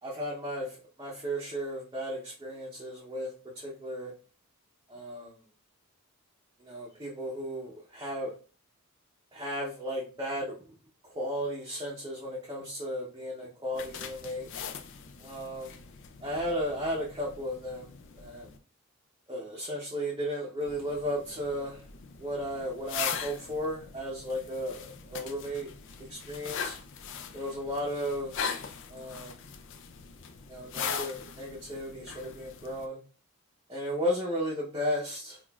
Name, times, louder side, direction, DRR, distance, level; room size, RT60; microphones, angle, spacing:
voice 1, 0.0-4.1 4.9-5.4 6.6-8.3 9.3-10.6 11.0-14.5 15.2-15.7 16.2-17.9 18.2-18.5 19.3-21.8 22.2-25.7 26.1-26.7 27.3-28.5 28.9-29.4 30.5-33.0 33.7-35.4, equal, 20° right, -4 dB, 0.6 m, -35 dB
sound 1, 13.7-18.6 20.6-32.9, left 7 dB, 55° left, 0.4 m, -40 dB
5.7 x 2.4 x 2.3 m, 0.36 s
head